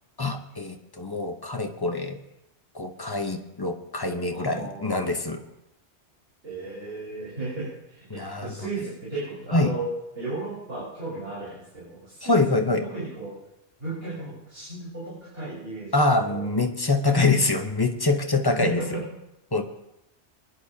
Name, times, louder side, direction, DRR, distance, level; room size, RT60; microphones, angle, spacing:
voice 1, 0.2-2.2 2.7-5.4 8.1-8.5 9.5-9.7 12.2-12.8 15.9-19.0 19.5-19.6, left 2 dB, 25° left, 5 dB, 0.8 m, -25 dB
voice 2, 4.3-5.2 6.4-13.4 13.8-16.0 16.3-16.5 18.4-19.1, right 2 dB, 60° right, -9 dB, 4.8 m, -35 dB
23.5 x 11.0 x 2.8 m, 0.87 s
omnidirectional pair, 1.1 m